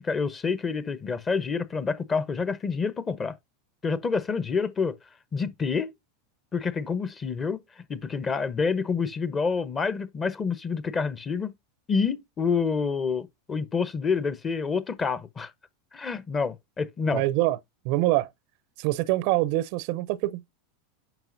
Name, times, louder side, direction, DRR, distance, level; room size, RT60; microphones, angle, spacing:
voice 1, 0.0-3.4 3.8-5.0 5.3-5.9 6.5-11.5 11.9-15.5 15.9-17.2, left 5 dB, 25° left, 0.9 m, -28 dB
voice 2, 17.1-17.6 17.8-18.3 18.8-20.4, right 17 dB, 55° right, 0.5 m, -24 dB
9.1 x 5.8 x 2.6 m
hypercardioid pair, 90°, 0 cm